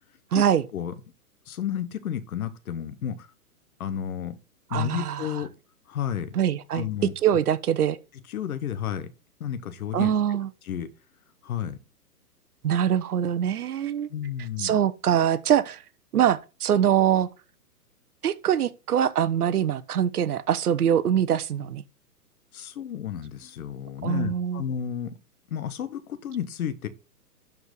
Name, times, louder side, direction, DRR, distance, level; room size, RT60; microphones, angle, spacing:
voice 1, 0.3-0.6 4.7-5.3 6.3-6.9 7.2-8.0 9.9-10.5 12.6-14.1 14.6-15.8 16.1-17.3 18.2-21.8 24.0-24.6, right 9 dB, 65° right, 1.1 m, -23 dB
voice 2, 1.5-3.3 3.8-4.4 4.7-5.5 5.9-6.4 6.7-7.1 8.3-9.1 9.4-10.4 10.6-10.9 11.4-11.8 14.1-14.7 22.5-25.2 25.5-26.9, left 9 dB, 60° left, 1.5 m, -32 dB
12.0 x 4.6 x 4.0 m
hypercardioid pair, 135°, 48 cm